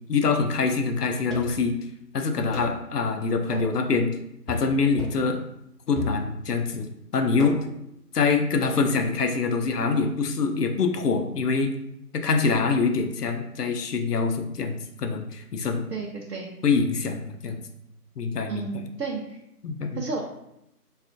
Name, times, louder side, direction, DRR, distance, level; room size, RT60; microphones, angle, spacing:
voice 1, 0.1-1.8 2.1-4.1 4.5-5.4 5.9-7.6 8.1-11.7 12.1-15.8 16.6-17.6 18.2-18.8 19.6-20.0, left 4 dB, 75° left, 6 dB, 0.5 m, -25 dB
sound 1, 1.3-1.7 2.5-2.8 3.5-3.8 4.5-4.7 5.0-5.3 6.0-6.5 7.4-7.8 8.6-8.9, left 2 dB, ahead, 0.4 m, -35 dB
voice 2, 15.9-16.5 18.5-19.4 20.0-20.2, right 4 dB, 80° right, -1 dB, 0.7 m, -32 dB
3.4 x 2.4 x 2.5 m, 0.80 s
figure-of-eight pair, 180°, 47 cm